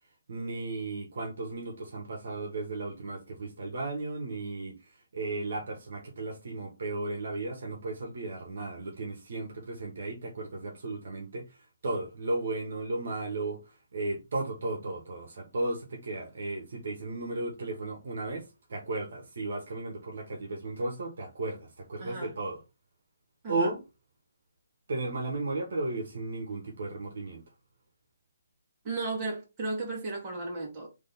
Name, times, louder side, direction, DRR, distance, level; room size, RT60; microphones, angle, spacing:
voice 1, 0.3-4.8 5.1-11.5 11.8-13.6 13.9-22.6 23.5-23.8 24.9-27.4, right 2 dB, 65° right, 1.4 m, -34 dB
voice 2, 22.0-22.3 23.4-23.7 28.8-30.9, right 3 dB, 25° right, 2.1 m, -34 dB
3.7 x 3.1 x 4.0 m
hypercardioid pair, 160°, 0 cm